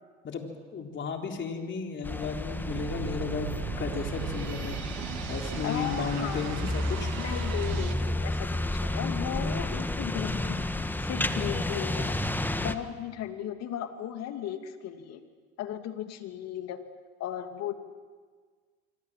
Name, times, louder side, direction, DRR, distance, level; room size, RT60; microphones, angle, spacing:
voice 1, 0.2-4.8 5.3-7.1, left 5 dB, 35° left, 3 dB, 4.0 m, -34 dB
sound 1, 2.0-12.7, left 1 dB, 5° left, 1.5 m, -31 dB
sound 2, 2.6-7.9, right 10 dB, 70° right, 2.7 m, -38 dB
voice 2, 5.6-6.7 7.2-10.7 11.0-12.2 12.6-15.2 15.6-16.8 17.2-17.7, left 10 dB, 50° left, 7 dB, 2.7 m, -36 dB
25.5 x 25.0 x 7.6 m, 1.5 s
hypercardioid pair, 85°, 32 cm